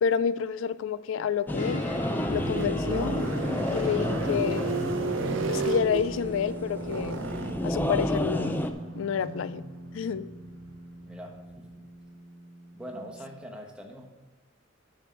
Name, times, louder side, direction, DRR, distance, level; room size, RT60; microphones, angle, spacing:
voice 1, 0.0-1.8 2.3-3.2 3.7-4.7 5.5-7.2 7.6-8.7 8.9-9.6 9.9-10.2, left 7 dB, 85° left, 16 dB, 0.3 m, -29 dB
sound 1, 1.5-13.4, equal, 35° left, 1.4 m, -41 dB
sound 2, 1.5-8.7, left 1 dB, 10° left, 0.5 m, -31 dB
sound 3, 1.7-11.7, right 4 dB, 80° right, 0.6 m, -35 dB
voice 2, 11.0-11.6 12.7-14.1, equal, 5° right, 0 dB, 1.2 m, -42 dB
7.6 x 5.9 x 6.4 m, 1.3 s
head